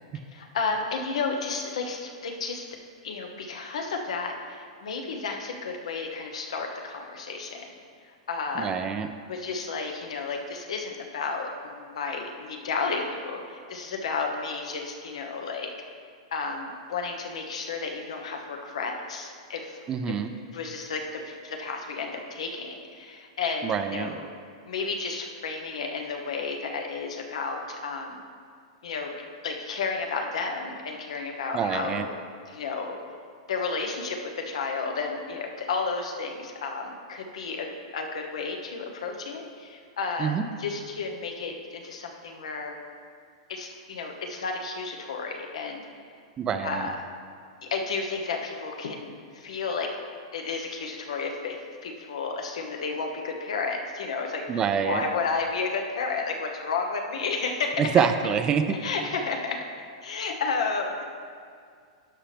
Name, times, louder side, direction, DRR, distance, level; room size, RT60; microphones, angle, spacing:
voice 1, 0.3-2.7 3.0-7.7 8.3-8.8 9.3-15.7 16.3-19.8 20.5-24.2 24.7-28.2 28.8-29.1 29.4-32.1 32.5-33.0 33.5-42.8 43.5-45.8 46.6-46.9 47.6-49.9 50.3-57.9 58.7-59.6 60.0-61.0, left 4 dB, 85° left, 2 dB, 1.1 m, -32 dB
voice 2, 8.6-9.1 19.9-20.3 23.6-24.2 31.5-32.1 40.2-40.4 46.4-46.9 54.5-55.0 57.8-58.8, right 7 dB, 20° right, 9 dB, 0.4 m, -26 dB
11.5 x 5.8 x 3.4 m, 2.2 s
hypercardioid pair, 145°, 3 cm